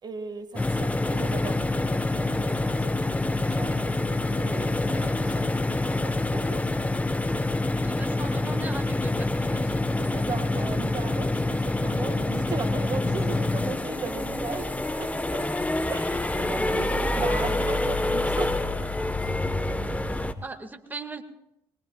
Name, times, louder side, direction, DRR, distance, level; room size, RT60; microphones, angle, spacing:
voice 1, 0.0-1.6 2.1-6.6 7.3-7.4 10.0-15.5 15.9-18.6 19.2-19.3, right 5 dB, 45° right, 7 dB, 1.9 m, -37 dB
sound 1, 0.6-20.3, left 2 dB, 15° left, 1.2 m, -26 dB
voice 2, 7.8-9.8 20.4-21.2, right 3 dB, 15° right, 5 dB, 2.0 m, -38 dB
23.0 x 21.5 x 2.4 m, 0.84 s
supercardioid pair, 60°, 10 cm